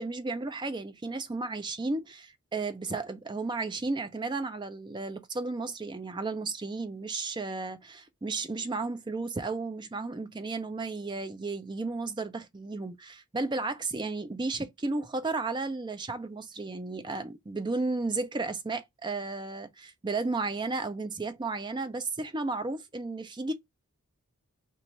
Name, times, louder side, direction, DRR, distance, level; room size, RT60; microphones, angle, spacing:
voice 1, 0.0-23.5, right 3 dB, 20° right, 0.4 m, -33 dB
3.0 x 2.4 x 4.0 m
head